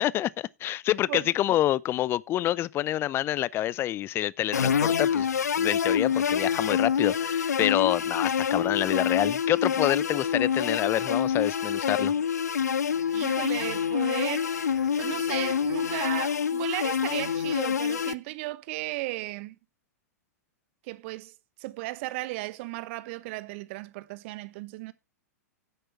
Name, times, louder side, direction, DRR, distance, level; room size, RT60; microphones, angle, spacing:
voice 1, 0.0-5.3 5.6-12.1, left 13 dB, 25° left, 0.4 m, -27 dB
sound 1, 4.5-18.1, left 7 dB, 75° left, 0.5 m, -26 dB
voice 2, 13.1-19.5 20.8-24.9, right 19 dB, 45° right, 0.9 m, -35 dB
9.9 x 7.8 x 4.5 m
figure-of-eight pair, 105°, 9 cm